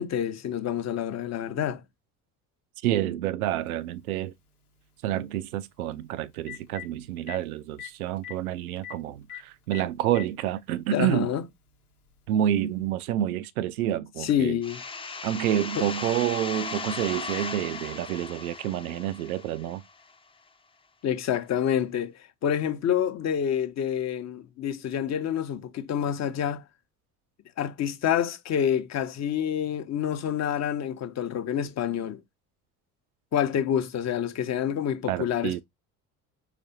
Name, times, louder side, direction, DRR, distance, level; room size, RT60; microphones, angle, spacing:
voice 1, 0.0-1.8 10.9-11.4 14.2-14.8 15.8-15.9 21.0-22.1 22.4-26.6 27.6-32.2 33.3-35.6, left 9 dB, 35° left, 0.8 m, -27 dB
voice 2, 2.8-4.3 5.0-11.3 12.3-14.6 15.2-19.8 35.1-35.6, right 12 dB, 70° right, 0.5 m, -28 dB
Telephone, 3.7-3.8 5.9-6.0 6.3-6.9 7.3-7.4 7.8-7.9 8.2-8.3 8.8-8.9 9.3-9.4 9.7-10.3 11.3-11.4 12.8-12.9, left 13 dB, 80° left, 0.9 m, -39 dB
sound 1, 14.6-20.1, left 4 dB, 10° left, 0.5 m, -37 dB
5.0 x 3.3 x 2.8 m
figure-of-eight pair, 55°, 45 cm